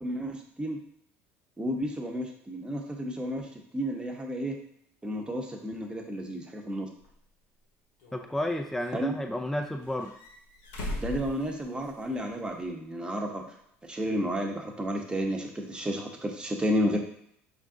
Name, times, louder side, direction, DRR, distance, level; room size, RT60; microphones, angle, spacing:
voice 1, 0.0-0.8 1.6-3.5 3.7-4.6 5.0-6.9 8.9-9.2 11.0-13.5 13.9-17.0, equal, 15° right, 2 dB, 0.9 m, -31 dB
sound 1, 7.0-7.1 8.0-8.9 9.8-12.1 12.4-12.5 14.1-14.2, left 1 dB, 85° left, 1.2 m, -39 dB
voice 2, 8.1-10.1, left 1 dB, 5° left, 4 dB, 0.4 m, -31 dB
5.2 x 2.5 x 3.7 m, 0.70 s
supercardioid pair, 90°, 6 cm